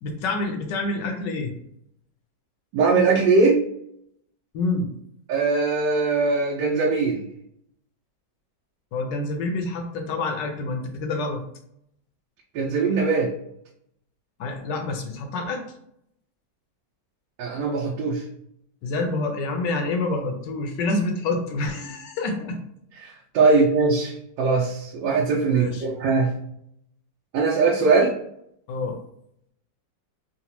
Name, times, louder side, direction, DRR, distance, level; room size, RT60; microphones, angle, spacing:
voice 1, 0.0-1.5 4.5-4.9 8.9-11.4 14.4-15.6 18.8-22.6 25.5-25.8 28.7-29.0, left 2 dB, 75° left, 4 dB, 1.3 m, -27 dB
voice 2, 2.7-3.6 5.3-7.2 12.5-13.3 17.4-18.2 23.0-26.3 27.3-28.1, right 4 dB, 85° right, -3 dB, 1.3 m, -21 dB
3.9 x 2.1 x 2.8 m, 0.74 s
omnidirectional pair, 1.9 m